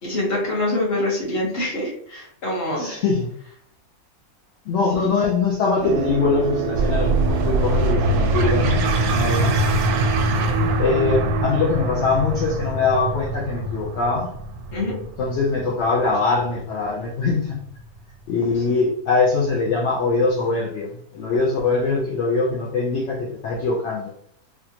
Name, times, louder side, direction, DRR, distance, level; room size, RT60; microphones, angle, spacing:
voice 1, 0.0-2.9 5.0-5.1 10.3-10.7 14.7-15.1, left 1 dB, 45° left, -5 dB, 1.4 m, -25 dB
voice 2, 2.8-3.3 4.7-8.8 9.1-9.7 10.8-14.3 15.2-17.6 18.3-24.1, left 4 dB, 60° left, -3 dB, 0.8 m, -22 dB
sound 1, 5.8-14.3 14.6-14.7, right 7 dB, 70° right, 0.8 m, -30 dB
sound 2, 6.7-17.8, right 1 dB, 90° right, 1.1 m, -23 dB
3.4 x 2.5 x 2.8 m, 0.64 s
omnidirectional pair, 1.5 m